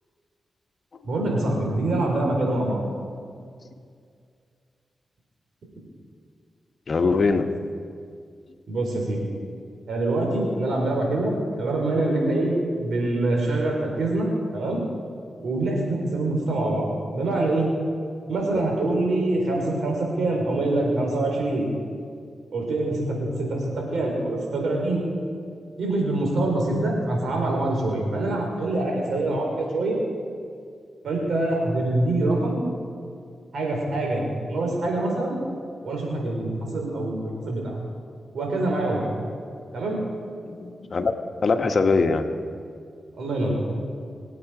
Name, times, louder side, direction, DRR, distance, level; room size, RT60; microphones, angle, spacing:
voice 1, 1.0-2.8 8.7-9.3 9.9-14.8 15.4-17.7 18.3-21.7 22.5-23.5 23.7-25.0 25.8-30.0 31.0-32.6 33.5-35.4 35.8-37.7 38.3-39.1 39.7-40.0 43.2-43.7, right 2 dB, 80° right, 0 dB, 4.1 m, -25 dB
voice 2, 6.9-7.5 40.5-41.1 41.4-42.2, left 4 dB, 55° left, 6 dB, 1.3 m, -22 dB
25.0 x 8.7 x 5.0 m, 2.2 s
cardioid pair, 50°, 0 cm